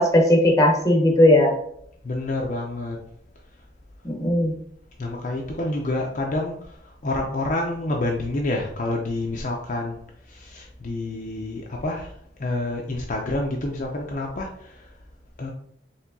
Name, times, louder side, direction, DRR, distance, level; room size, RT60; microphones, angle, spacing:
voice 1, 0.0-1.5 4.0-4.5, left 1 dB, 20° left, 0 dB, 0.8 m, -17 dB
voice 2, 2.0-3.0 5.0-6.7 7.0-10.0 10.3-12.1 12.4-14.9 15.4-15.5, left 2 dB, 45° left, 0 dB, 0.5 m, -28 dB
4.5 x 3.2 x 2.7 m, 0.68 s
head